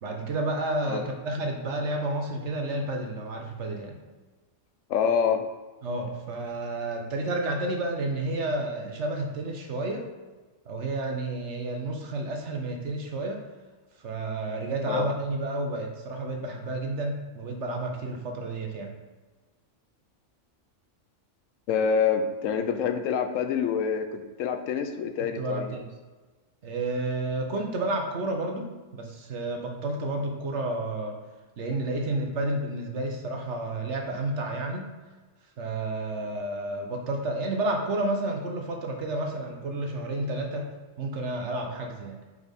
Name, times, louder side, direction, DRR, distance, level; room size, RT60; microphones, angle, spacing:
voice 1, 0.0-4.0 5.8-10.1 10.7-13.4 14.0-18.9 25.2-25.8 26.6-31.2 31.6-34.9 35.6-42.2, right 2 dB, 65° right, 2 dB, 1.1 m, -31 dB
voice 2, 4.9-5.4 14.9-15.1 21.7-25.7, left 6 dB, 80° left, 7 dB, 1.0 m, -26 dB
4.8 x 4.2 x 5.1 m, 1.3 s
omnidirectional pair, 1.3 m